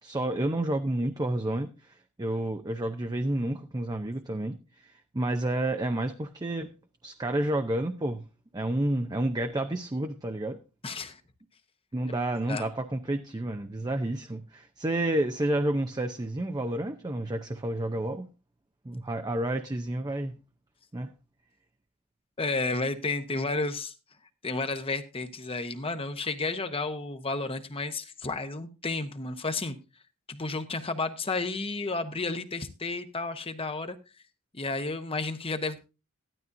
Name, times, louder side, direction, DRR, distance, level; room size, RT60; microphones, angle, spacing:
voice 1, 0.0-4.6 4.8-6.7 7.0-8.2 8.5-10.6 11.9-18.3 18.8-20.4 20.9-21.1, right 1 dB, 20° right, 0.6 m, -30 dB
voice 2, 10.8-11.2 12.5-12.7 22.4-23.9 24.4-29.7 30.3-34.0 34.5-35.8, left 3 dB, 25° left, 1.0 m, -32 dB
14.0 x 12.0 x 2.6 m
head